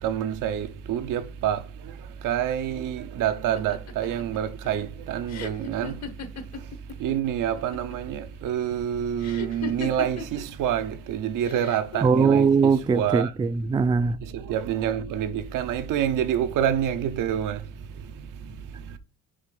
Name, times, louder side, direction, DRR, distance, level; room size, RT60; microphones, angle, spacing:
voice 1, 0.0-6.0 7.0-13.3 14.2-17.7 18.1-19.0, right 9 dB, 80° right, 0.8 m, -27 dB
sound 1, 3.6-7.1 7.4-8.1 9.2-10.4 11.4-12.0, left 4 dB, 55° left, 1.2 m, -37 dB
voice 2, 12.0-14.2, right 5 dB, 15° right, 0.3 m, -21 dB
5.5 x 5.1 x 5.3 m
cardioid pair, 125°, 31 cm